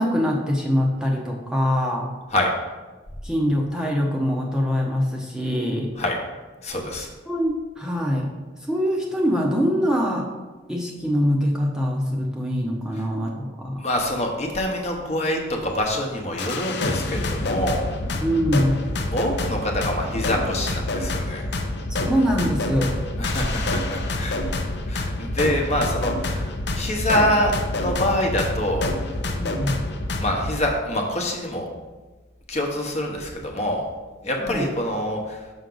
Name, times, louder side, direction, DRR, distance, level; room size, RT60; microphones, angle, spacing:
voice 1, 0.0-2.1 3.2-5.9 7.0-8.3 8.6-10.3 10.7-13.8 18.2-18.8 21.9-23.0 29.4-29.8 34.4-34.7, equal, 5° right, -2 dB, 0.7 m, -23 dB
voice 2, 6.6-7.1 13.8-17.9 19.1-21.5 23.2-24.4 24.9-26.5 26.7-28.9 30.2-31.7 32.5-33.8 34.2-35.4, left 1 dB, 35° left, 1 dB, 1.0 m, -25 dB
sound 1, 14.5-14.6 15.1-15.4 15.7-17.2 17.8-17.9 19.6-29.0, equal, 80° right, 1.4 m, -41 dB
sound 2, 16.4-30.5, left 2 dB, 60° left, 0.6 m, -27 dB
6.3 x 5.7 x 3.9 m, 1.2 s
head